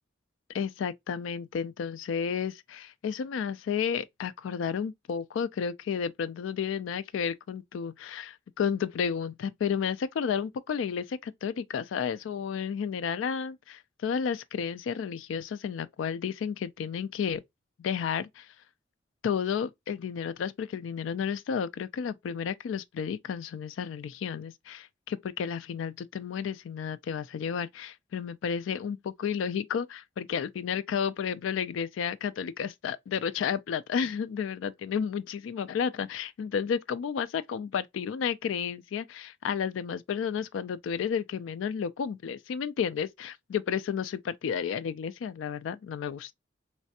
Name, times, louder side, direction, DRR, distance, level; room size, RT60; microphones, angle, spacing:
voice 1, 0.5-17.4 17.8-18.5 19.2-46.3, left 7 dB, 85° left, 0.3 m, -32 dB
3.3 x 3.1 x 2.7 m
head